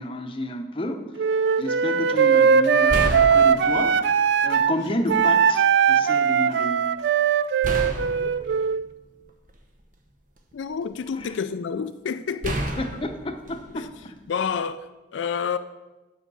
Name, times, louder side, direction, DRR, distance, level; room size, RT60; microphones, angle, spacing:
voice 1, 0.0-4.0 4.4-6.9 11.1-11.4 12.8-14.2, left 1 dB, 30° left, 0.7 m, -31 dB
Wind instrument woodwind instrument, 1.2-4.8 5.1-8.8, right 7 dB, 70° right, 0.3 m, -20 dB
sound 1, 2.1-2.3 2.9-4.2 5.1-5.2 7.6-9.8 10.4-11.2 12.4-14.5, right 1 dB, 45° right, 1.0 m, -31 dB
voice 2, 10.5-12.6 13.7-13.9 14.3-15.6, left 6 dB, 85° left, 0.4 m, -29 dB
8.5 x 5.0 x 6.9 m
head